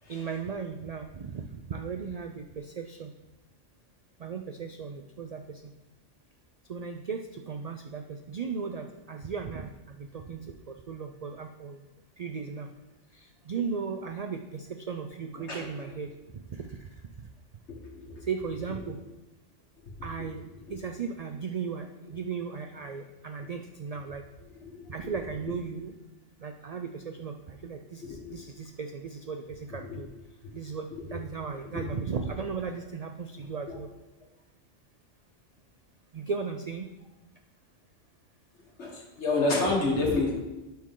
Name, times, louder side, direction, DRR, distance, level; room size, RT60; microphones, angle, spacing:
voice 1, 0.1-3.1 4.2-5.6 6.7-11.8 12.2-12.7 13.1-16.1 16.5-16.8 18.2-19.0 20.0-20.4 20.7-24.2 24.9-25.9 26.4-30.1 30.5-33.9 36.1-36.9, right 5 dB, 80° right, 5 dB, 0.3 m, -36 dB
voice 2, 15.4-15.9 17.7-18.3 18.8-18.9 20.2-20.3 24.5-25.1 28.0-28.4 29.7-30.0 30.4-30.5 31.0-31.1 31.7-32.0 33.7-33.8 38.8-40.3, left 3 dB, 65° left, -1 dB, 1.9 m, -30 dB
12.0 x 4.4 x 3.7 m, 1.1 s
omnidirectional pair, 1.3 m